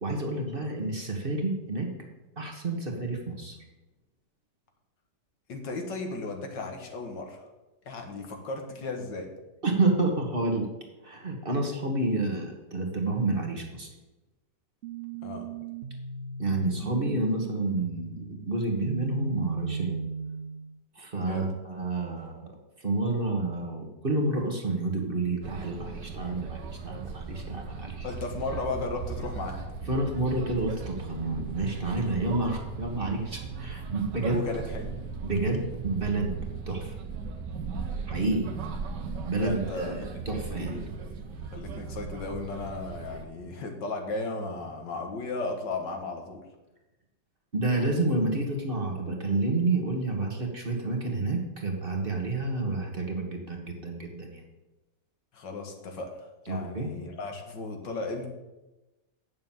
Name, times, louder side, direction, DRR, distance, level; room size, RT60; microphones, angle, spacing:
voice 1, 0.0-1.9 2.4-3.5 9.6-10.7 11.0-13.9 16.4-20.0 21.0-22.5 22.8-28.1 29.9-34.4 35.2-36.4 36.7-36.9 38.1-38.5 39.2-40.8 47.5-54.4 56.5-56.9, right 2 dB, 35° right, 2 dB, 1.6 m, -29 dB
voice 2, 5.5-7.5 7.9-9.3 15.2-15.5 21.1-21.5 28.0-29.6 34.3-34.9 39.3-39.9 40.3-41.2 41.4-46.4 55.3-58.3, left 3 dB, 85° left, 4 dB, 2.2 m, -35 dB
sound 1, 14.8-20.8, right 5 dB, 55° right, 0.8 m, -36 dB
sound 2, 25.4-43.2, right 5 dB, 80° right, 1.6 m, -38 dB
9.0 x 7.0 x 7.4 m, 1.0 s
omnidirectional pair, 1.9 m